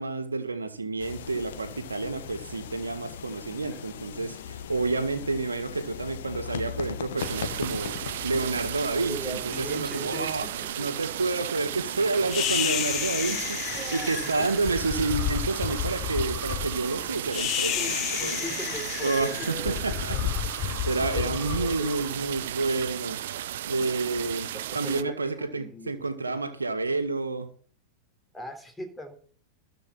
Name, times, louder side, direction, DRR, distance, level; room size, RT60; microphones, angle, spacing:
voice 1, 0.0-7.9 8.2-10.5 10.8-13.6 13.9-18.4 19.0-23.2 23.7-27.5, right 3 dB, 75° right, 9 dB, 1.7 m, -29 dB
sound 1, 1.0-11.3, left 8 dB, 60° left, 1.3 m, -39 dB
sound 2, 7.2-25.0, right 12 dB, 55° right, 0.6 m, -35 dB
voice 2, 8.9-10.5 10.8-10.9 13.3-14.1 17.7-19.8 20.1-20.3 21.1-22.2 24.2-25.9 28.3-29.2, right 1 dB, 5° left, 5 dB, 3.4 m, -40 dB
sound 3, 12.3-22.7, left 12 dB, 35° left, 1.0 m, -31 dB
13.5 x 5.3 x 8.7 m, 0.43 s
figure-of-eight pair, 90°, 0 cm